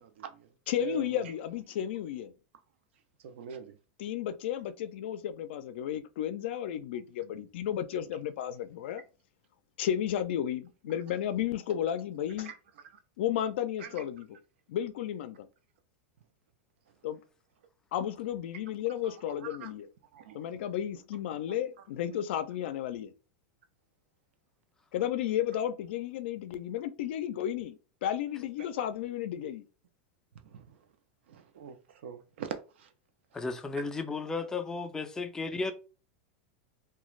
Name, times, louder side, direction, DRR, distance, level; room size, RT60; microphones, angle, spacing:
voice 1, 0.0-0.5 0.8-1.2 3.2-3.8 12.4-12.5 13.8-14.0 19.0-19.1 19.4-19.7 20.1-20.4 30.4-30.8 31.3-31.8 32.0-32.9, right 8 dB, 90° right, 0.5 m, -42 dB
voice 2, 0.7-2.3 4.0-9.0 9.8-12.5 13.2-14.4 14.7-15.5 17.0-17.2 17.9-19.9 20.3-23.1 24.9-29.6, left 10 dB, 75° left, 0.4 m, -33 dB
voice 3, 33.3-35.7, left 3 dB, 10° left, 0.3 m, -34 dB
2.4 x 2.2 x 3.0 m
supercardioid pair, 150°, 6 cm